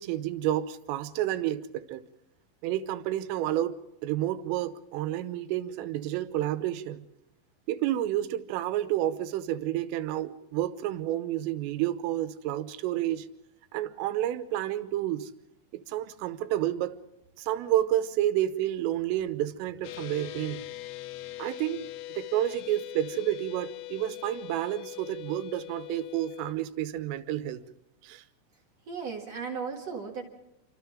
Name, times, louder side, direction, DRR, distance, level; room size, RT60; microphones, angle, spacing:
voice 1, 0.0-2.0 2.6-3.8 4.0-7.1 7.7-13.3 13.7-15.3 15.7-17.0 17.4-20.7 21.4-21.8 22.2-27.6 28.0-28.2, right 13 dB, 85° right, 11 dB, 3.5 m, -30 dB
sound 1, 19.8-26.5, left 16 dB, 85° left, 3.6 m, -41 dB
voice 2, 28.8-30.2, right 5 dB, 55° right, 1 dB, 1.8 m, -36 dB
28.5 x 25.5 x 3.7 m, 0.87 s
omnidirectional pair, 5.8 m